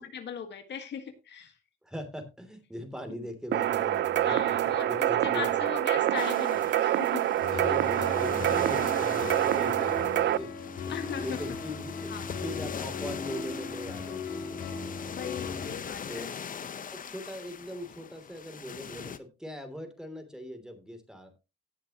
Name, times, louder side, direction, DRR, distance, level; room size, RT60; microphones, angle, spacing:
voice 1, 0.0-1.5 3.1-3.2 4.2-7.3 7.6-7.8 10.9-11.6 12.1-12.3 15.1-16.3, left 7 dB, 60° left, 8 dB, 1.6 m, -39 dB
voice 2, 1.8-5.8 7.6-10.1 10.4-10.5 10.9-12.1 12.4-14.9 15.5-15.6 16.1-16.3 16.9-21.4, equal, 5° right, 7 dB, 2.9 m, -40 dB
sound 1, 3.5-10.4, right 12 dB, 60° right, 0.6 m, -26 dB
sound 2, 6.2-19.2, left 7 dB, 45° left, 0.9 m, -42 dB
sound 3, 7.4-15.7, left 5 dB, 85° left, 3.8 m, -37 dB
17.5 x 6.6 x 2.9 m, 0.27 s
cardioid pair, 90°, 20 cm